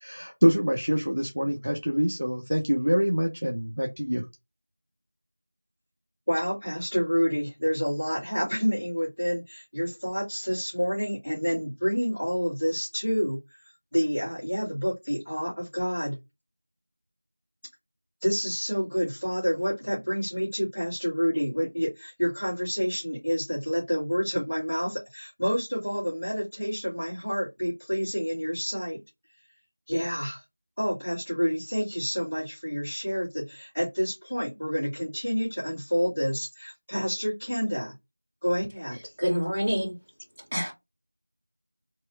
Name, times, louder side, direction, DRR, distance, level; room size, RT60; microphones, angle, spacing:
voice 1, 0.0-4.2, equal, 40° right, 0.5 m, -25 dB
voice 2, 6.3-13.4 13.9-16.2 18.2-29.0 29.9-30.4 30.8-37.9 38.4-39.1, equal, 10° left, 0.9 m, -28 dB
voice 3, 39.2-39.9 40.5-40.7, equal, 20° right, 1.7 m, -26 dB
2.9 x 2.3 x 3.2 m
figure-of-eight pair, 180°, 0 cm